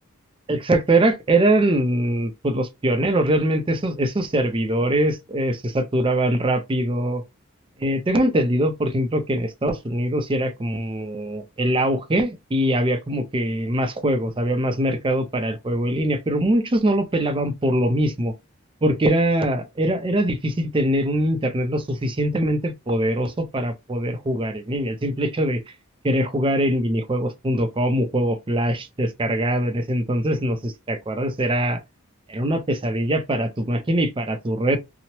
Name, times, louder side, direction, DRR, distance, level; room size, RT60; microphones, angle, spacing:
voice 1, 0.5-7.2 7.8-18.3 18.8-25.6 26.0-31.8 32.3-34.8, right 1 dB, 25° right, 0.5 m, -22 dB
2.8 x 2.0 x 3.0 m
head